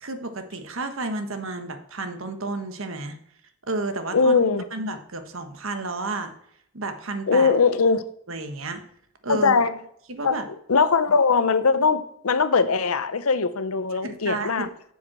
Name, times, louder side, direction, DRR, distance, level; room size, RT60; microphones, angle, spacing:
voice 1, 0.0-3.2 3.7-4.4 4.7-6.3 6.7-7.5 8.3-8.8 9.2-9.6 10.1-10.5 14.0-14.7, right 2 dB, 70° right, 1.3 m, -31 dB
voice 2, 4.1-4.6 7.3-8.0 9.3-9.8 10.2-10.4 10.7-14.7, left 4 dB, 85° left, 0.8 m, -20 dB
7.8 x 7.2 x 6.1 m
head